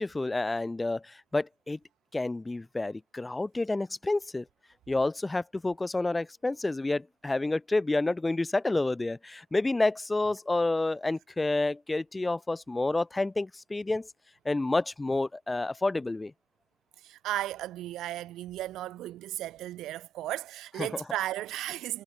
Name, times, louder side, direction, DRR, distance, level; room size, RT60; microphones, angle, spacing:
voice 1, 0.0-1.8 2.1-4.4 4.9-14.1 14.5-16.3 20.8-21.0, left 2 dB, 15° left, 0.5 m, -29 dB
voice 2, 17.0-22.0, right 14 dB, 85° right, 0.6 m, -35 dB
cardioid pair, 90°, 0 cm